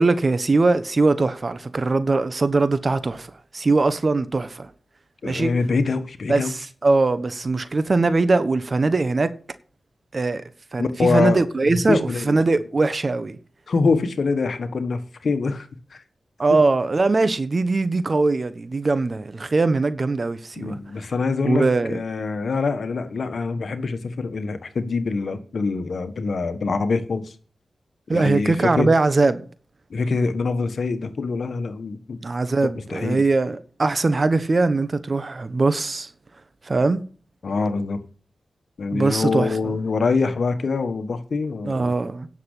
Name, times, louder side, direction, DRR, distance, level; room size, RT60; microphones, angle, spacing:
voice 1, 0.0-4.7 5.2-5.5 6.3-9.3 10.1-10.4 10.7-13.4 16.4-20.8 21.4-22.0 28.1-29.4 32.2-36.1 36.6-37.0 38.9-39.6 41.6-42.3, right 3 dB, 50° right, 1.3 m, -21 dB
voice 2, 5.2-6.7 10.8-12.4 13.7-16.0 16.5-16.6 20.5-27.3 28.1-28.9 29.9-32.2 32.7-33.3 37.4-38.0 38.8-41.9, left 4 dB, 70° left, 1.4 m, -25 dB
10.0 x 6.7 x 8.2 m
cardioid pair, 45°, 0 cm